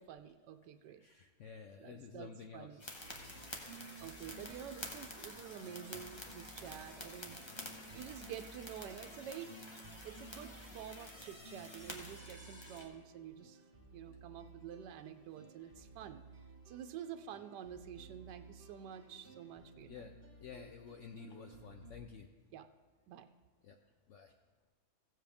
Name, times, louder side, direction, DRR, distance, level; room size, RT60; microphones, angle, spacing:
voice 1, 0.0-1.0 1.8-2.8 4.0-7.4 7.7-13.6 13.9-16.2 16.7-20.1 22.5-22.7 23.1-23.3, right 9 dB, 90° right, 9 dB, 1.2 m, -49 dB
voice 2, 1.0-2.8 6.4-6.5 9.0-9.1 10.0-10.1 19.9-20.1 20.4-22.3 23.6-23.8 24.1-24.3, left 6 dB, 70° left, 5 dB, 0.7 m, -51 dB
sound 1, 2.8-12.9, left 1 dB, 20° left, 0.9 m, -50 dB
sound 2, 3.0-21.9, right 2 dB, 40° right, 1.5 m, -57 dB
16.0 x 7.5 x 3.5 m, 1.4 s
omnidirectional pair, 1.8 m